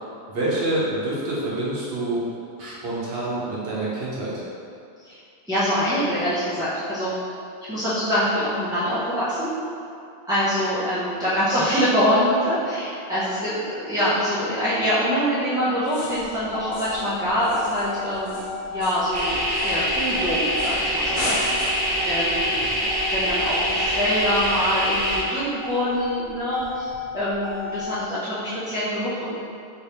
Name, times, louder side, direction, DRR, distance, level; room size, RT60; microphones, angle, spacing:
voice 1, 0.3-2.3 2.6-4.4 22.5-22.8, right 2 dB, 65° right, -8 dB, 1.1 m, -27 dB
voice 2, 5.5-7.1 7.7-9.5 10.3-18.4 18.7-21.3 22.0-22.5 23.1-29.4, equal, 5° right, -14 dB, 0.4 m, -24 dB
sound 1, 15.9-16.3 16.7-17.1 17.4-20.1 20.6-20.8 21.1-22.0, left 1 dB, 65° left, 0.9 m, -35 dB
Motor vehicle (road), 16.1-28.1, left 4 dB, 85° left, 1.0 m, -34 dB
sound 2, 19.1-25.2, equal, 35° right, 0.8 m, -24 dB
3.2 x 3.0 x 2.9 m, 2.5 s
omnidirectional pair, 1.1 m